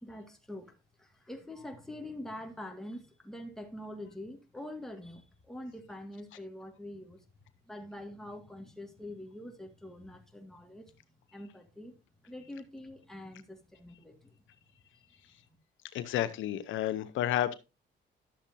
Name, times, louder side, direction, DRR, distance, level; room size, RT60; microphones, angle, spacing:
voice 1, 0.0-7.3 7.7-11.0 11.3-11.9 12.2-14.4, left 1 dB, ahead, 2.0 m, -45 dB
voice 2, 15.9-17.5, left 12 dB, 85° left, 0.8 m, -31 dB
11.5 x 7.2 x 2.7 m
cardioid pair, 90°, 20 cm